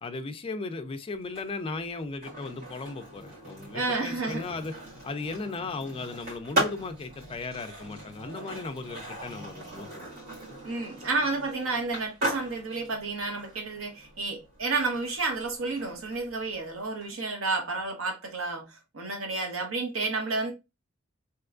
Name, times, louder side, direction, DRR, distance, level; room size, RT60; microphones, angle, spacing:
voice 1, 0.0-4.7 5.0-10.1 10.5-10.6 11.0-11.1, left 3 dB, 25° left, 0.3 m, -36 dB
Skateboard, 1.2-17.1, right 1 dB, 45° right, 1.9 m, -38 dB
voice 2, 3.7-4.4 10.6-20.5, right 3 dB, 65° right, 0.9 m, -31 dB
3.4 x 3.0 x 2.4 m
head